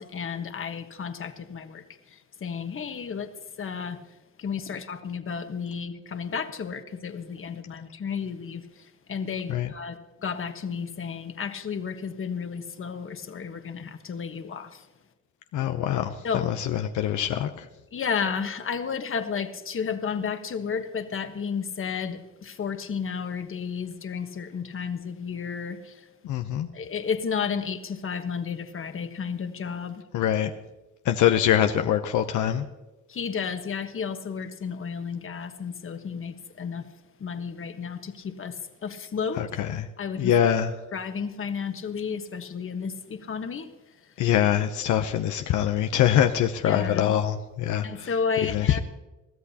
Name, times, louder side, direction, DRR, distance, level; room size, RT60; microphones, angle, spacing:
voice 1, 0.0-3.3 3.6-4.0 4.4-14.9 16.2-16.5 17.9-26.1 26.7-30.0 33.1-36.9 37.2-39.4 40.0-40.3 40.9-43.7 44.0-44.1 46.6-47.1 47.8-48.8, left 6 dB, 45° left, 8 dB, 1.3 m, -32 dB
voice 2, 15.5-17.7 26.2-26.7 30.1-30.5 31.1-32.6 39.4-39.8 40.2-40.7 44.2-48.1 48.5-48.8, left 10 dB, 75° left, 7 dB, 0.7 m, -24 dB
21.5 x 14.0 x 2.9 m, 1.1 s
cardioid pair, 90°, 30 cm